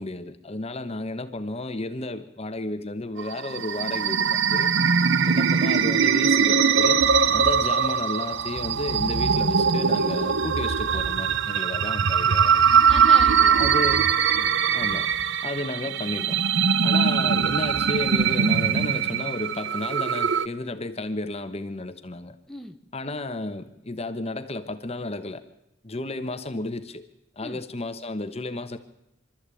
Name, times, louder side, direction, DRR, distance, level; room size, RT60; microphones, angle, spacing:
voice 1, 0.0-4.7 5.2-7.0 7.3-12.7 13.6-14.2 14.7-15.1 15.4-16.4 16.8-22.4 22.9-25.4 25.8-27.0 27.4-28.8, left 2 dB, 30° left, 9 dB, 1.1 m, -33 dB
sound 1, 3.2-20.5, right 6 dB, 65° right, 0.7 m, -21 dB
voice 2, 12.8-14.1 14.3-14.6 22.5-22.8 27.4-27.6, left 1 dB, ahead, 3 dB, 1.2 m, -40 dB
25.0 x 13.0 x 8.4 m, 0.85 s
head